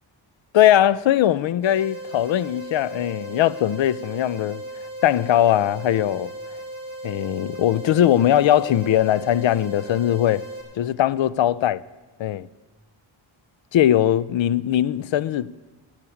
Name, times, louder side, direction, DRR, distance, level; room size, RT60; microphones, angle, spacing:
voice 1, 0.5-4.6 5.0-6.3 7.0-10.4 10.8-11.8 12.2-12.5 13.7-15.5, left 12 dB, 70° left, 0.5 m, -20 dB
sound 1, 1.6-10.6, right 1 dB, 10° right, 3.7 m, -36 dB
12.5 x 8.2 x 8.5 m
wide cardioid pair, 140°, 48 cm